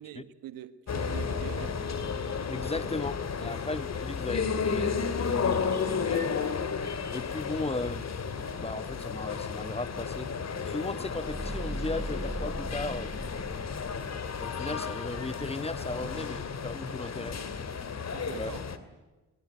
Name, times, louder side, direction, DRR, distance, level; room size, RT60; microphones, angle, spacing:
voice 1, 0.0-1.8 3.4-3.5 16.0-16.2 18.1-18.6, right 12 dB, 90° right, 1.5 m, -43 dB
sound 1, 0.9-18.8, left 5 dB, 50° left, 2.5 m, -33 dB
voice 2, 2.4-6.3 7.1-8.1 8.6-10.4 10.6-13.1 14.3-17.4 18.3-18.5, left 2 dB, 20° left, 1.1 m, -36 dB
sound 2, 11.1-14.4, right 1 dB, 5° right, 1.7 m, -38 dB
23.0 x 21.0 x 9.6 m
supercardioid pair, 65°, 33 cm